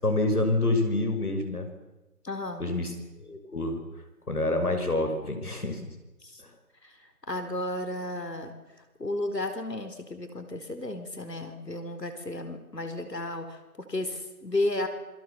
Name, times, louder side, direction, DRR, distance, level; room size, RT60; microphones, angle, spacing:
voice 1, 0.0-1.7 2.6-2.9 3.2-3.8 4.3-5.9, left 2 dB, 65° left, 6 dB, 5.9 m, -27 dB
voice 2, 2.2-2.6 6.2-6.4 6.8-8.5 9.0-14.9, left 1 dB, 85° left, 8 dB, 4.7 m, -33 dB
28.5 x 21.5 x 7.1 m, 1.1 s
figure-of-eight pair, 170°, 48 cm